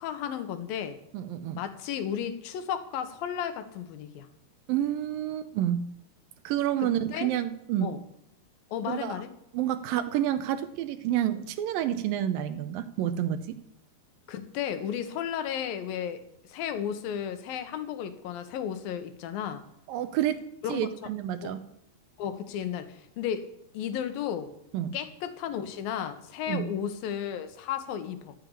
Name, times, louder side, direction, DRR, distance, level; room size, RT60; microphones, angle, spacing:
voice 1, 0.0-1.0 1.5-4.3 6.8-7.3 7.8-8.0 8.7-9.3 14.3-16.2 16.5-19.6 20.6-20.8 21.4-21.5 22.2-23.5 23.7-24.5 24.9-28.4, left 9 dB, 70° left, 10 dB, 2.7 m, -33 dB
voice 2, 1.1-1.6 4.7-5.8 6.4-8.0 8.9-9.2 9.5-13.6 19.9-20.4 20.7-21.6 24.7-24.9 26.5-26.7, right 11 dB, 75° right, 11 dB, 2.2 m, -29 dB
14.5 x 6.8 x 9.9 m, 0.78 s
omnidirectional pair, 4.8 m